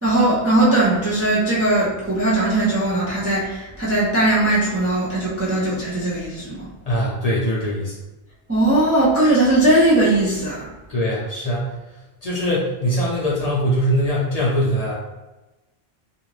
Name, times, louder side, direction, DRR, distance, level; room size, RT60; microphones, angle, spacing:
voice 1, 0.0-6.7 8.5-10.7, right 1 dB, 25° right, -7 dB, 0.3 m, -19 dB
voice 2, 6.9-7.9 10.9-11.7 12.2-14.9, equal, 50° left, -5 dB, 0.5 m, -22 dB
2.4 x 2.4 x 3.1 m, 1.1 s
omnidirectional pair, 1.0 m